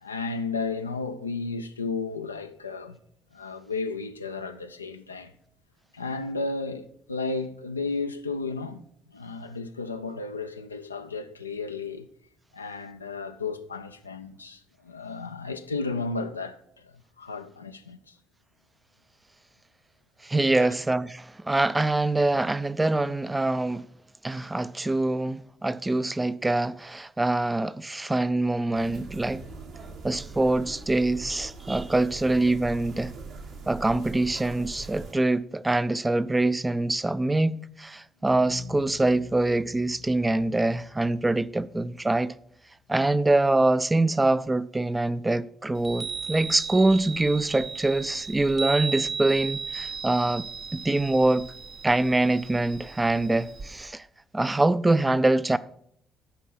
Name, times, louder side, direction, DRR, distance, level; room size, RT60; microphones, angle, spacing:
voice 1, 0.0-3.0 3.3-5.3 5.9-8.8 9.1-12.1 12.5-16.9 17.2-18.1 20.6-20.7, left 4 dB, 85° left, 0.4 m, -33 dB
voice 2, 20.2-23.8 24.2-29.4 30.0-33.1 33.7-42.3 42.9-51.5 51.8-54.0 54.3-55.6, right 2 dB, 15° right, 0.4 m, -24 dB
sound 1, 28.7-35.1, right 4 dB, 60° right, 1.5 m, -41 dB
sound 2, 38.3-42.9, left 5 dB, 65° left, 0.9 m, -46 dB
Chime, 45.8-53.9, right 5 dB, 40° right, 0.7 m, -36 dB
10.5 x 4.6 x 7.1 m
figure-of-eight pair, 45°, 0 cm